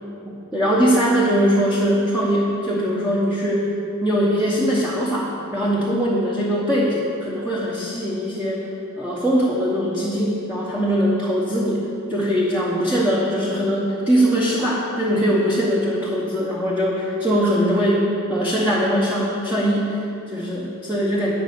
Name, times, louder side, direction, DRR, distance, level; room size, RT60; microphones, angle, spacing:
voice 1, 0.3-3.7 4.0-8.7 9.0-21.3, equal, 5° right, -6 dB, 1.1 m, -21 dB
11.0 x 5.5 x 8.4 m, 2.9 s
head